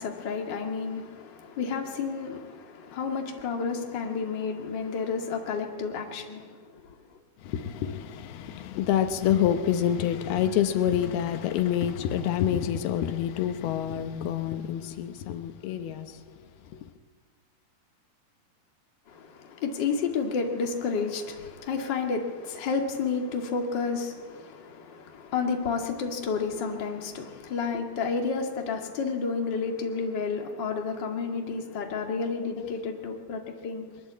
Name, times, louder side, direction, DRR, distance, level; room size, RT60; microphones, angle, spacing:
voice 1, 0.0-6.5 6.8-6.9 19.1-33.9, left 5 dB, 35° left, 2.4 m, -31 dB
voice 2, 7.4-16.8 32.6-32.7, left 10 dB, 80° left, 3.0 m, -27 dB
22.5 x 21.5 x 8.4 m
omnidirectional pair, 4.4 m